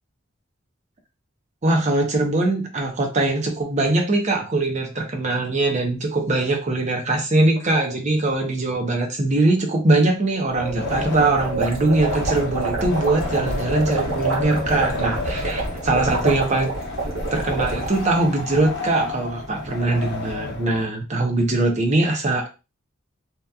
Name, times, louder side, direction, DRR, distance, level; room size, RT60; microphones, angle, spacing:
voice 1, 1.6-16.7 17.3-22.5, right 2 dB, 35° right, 2 dB, 0.6 m, -21 dB
Wind, 10.5-20.9, left 2 dB, 55° left, 0.8 m, -30 dB
sound 1, 11.2-18.0, right 3 dB, 75° right, 1.0 m, -27 dB
2.8 x 2.4 x 2.2 m, 0.28 s
head